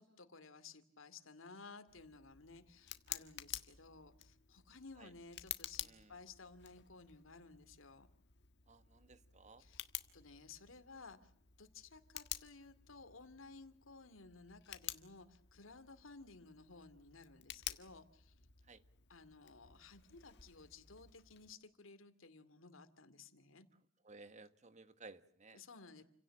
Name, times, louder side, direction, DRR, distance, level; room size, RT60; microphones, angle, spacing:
voice 1, 0.0-8.1 9.6-9.8 10.1-11.3 11.6-18.3 19.1-23.7 25.5-26.0, left 4 dB, 85° left, 10 dB, 2.4 m, -57 dB
Tick, 1.9-21.5, left 12 dB, 60° left, 1.6 m, -51 dB
voice 2, 5.8-6.2 8.7-9.7 18.6-18.8 24.0-25.6, right 3 dB, 35° right, 12 dB, 1.5 m, -58 dB
29.5 x 17.0 x 8.7 m, 0.69 s
head